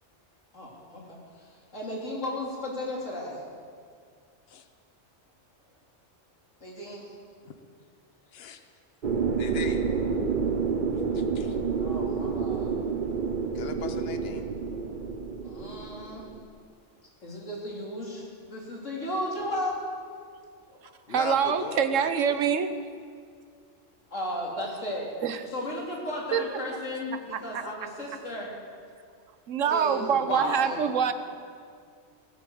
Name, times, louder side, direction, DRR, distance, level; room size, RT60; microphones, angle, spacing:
voice 1, 0.5-3.4 6.6-7.1 11.8-12.8 15.4-16.3 17.2-19.8 20.7-20.8 24.1-25.1 25.5-28.5 29.6-30.9, left 1 dB, 85° left, -3 dB, 3.4 m, -35 dB
voice 2, 8.3-8.6 9.4-9.8 11.1-11.6 13.5-14.5 21.1-22.4, left 6 dB, 55° left, 8 dB, 1.2 m, -38 dB
sound 1, 9.0-16.4, right 5 dB, 45° right, 0.9 m, -29 dB
voice 3, 21.1-22.7 25.2-25.4 26.3-26.6 27.3-27.6 29.5-31.1, right 7 dB, 90° right, 10 dB, 1.2 m, -25 dB
17.5 x 9.2 x 7.8 m, 2.2 s
omnidirectional pair, 1.3 m